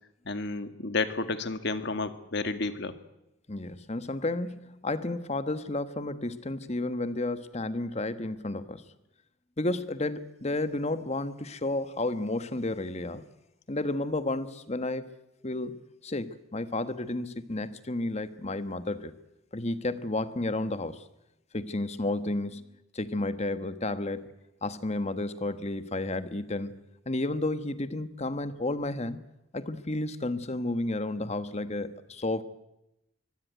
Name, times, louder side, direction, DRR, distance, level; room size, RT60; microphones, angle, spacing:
voice 1, 0.3-3.0, left 3 dB, 55° left, 10 dB, 1.8 m, -31 dB
voice 2, 3.5-8.8 9.6-13.2 13.7-15.2 15.4-19.1 19.5-21.0 21.5-22.6 22.9-24.2 24.6-26.7 27.0-29.2 29.5-32.4, left 2 dB, 30° left, 12 dB, 1.3 m, -32 dB
24.5 x 16.5 x 9.4 m, 0.89 s
head